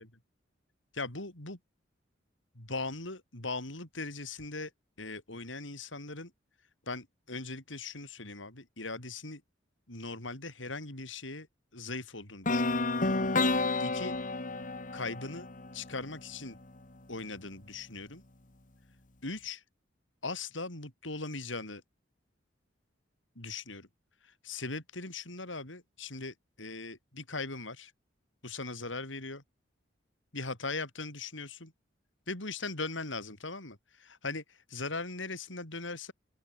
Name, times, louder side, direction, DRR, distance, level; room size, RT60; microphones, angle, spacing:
voice 1, 0.9-1.6 2.6-4.7 5.0-6.3 6.9-9.4 9.9-11.5 11.7-12.8 13.8-14.2 14.9-15.5 15.7-16.6 17.1-18.2 19.2-19.6 20.2-21.8 23.4-23.9 24.2-27.9 28.4-29.4 30.3-31.7 32.3-36.1, left 3 dB, 80° left, 5.6 m, -39 dB
sound 1, 12.5-16.4, left 3 dB, 45° left, 1.9 m, -30 dB
open air
head